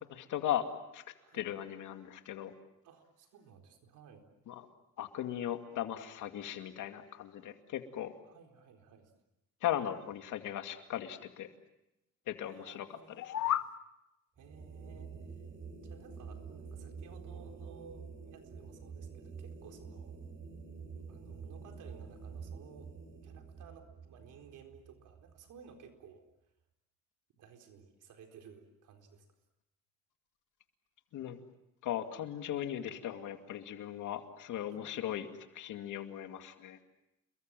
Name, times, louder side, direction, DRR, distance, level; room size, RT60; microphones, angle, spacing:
voice 1, 0.1-0.7 0.9-1.0 1.3-2.5 4.5-4.6 5.0-8.1 9.6-11.5 12.3-12.9 13.2-13.3 31.1-31.4 31.8-35.3 35.5-36.8, left 11 dB, 80° left, 6 dB, 2.4 m, -38 dB
voice 2, 2.8-4.3 8.2-9.1 12.4-13.6 14.4-15.1 15.8-20.2 21.1-22.9 23.2-26.2 27.4-29.2 32.9-33.1 34.7-35.2, right 6 dB, 80° right, 4 dB, 4.2 m, -56 dB
sound 1, 13.0-13.7, left 12 dB, 65° left, 1.2 m, -32 dB
sound 2, 14.4-25.7, right 5 dB, 40° right, 4.2 m, -48 dB
29.5 x 22.5 x 7.7 m, 0.89 s
cardioid pair, 90°, 30 cm